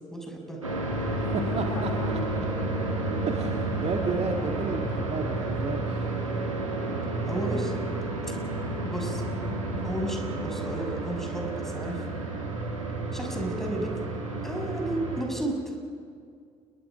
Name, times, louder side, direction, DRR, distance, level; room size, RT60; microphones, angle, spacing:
voice 1, 0.1-0.6 7.3-7.7 8.9-9.2 9.8-12.0 13.1-13.9 14.4-15.6, right 1 dB, ahead, 2 dB, 6.5 m, -32 dB
sound 1, 0.6-15.3, right 2 dB, 85° right, 2.5 m, -31 dB
voice 2, 1.1-2.5 3.3-6.1 9.7-9.8, right 5 dB, 40° right, 2 dB, 2.0 m, -32 dB
29.5 x 22.0 x 5.1 m, 2.2 s
figure-of-eight pair, 50°, 16 cm